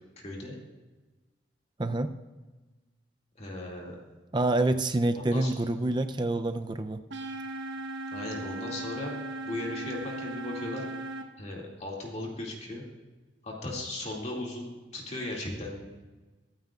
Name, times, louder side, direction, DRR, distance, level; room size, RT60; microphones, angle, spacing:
voice 1, 0.2-0.6 3.4-4.2 5.2-5.5 8.1-9.1 9.4-10.9 11.4-12.8 13.4-15.8, left 2 dB, 35° left, -3 dB, 2.3 m, -37 dB
voice 2, 1.8-2.1 4.3-7.0, right 2 dB, 25° right, 8 dB, 0.5 m, -27 dB
sound 1, 7.1-11.2, right 2 dB, 85° right, 1.2 m, -37 dB
24.0 x 9.2 x 2.4 m, 1.3 s
head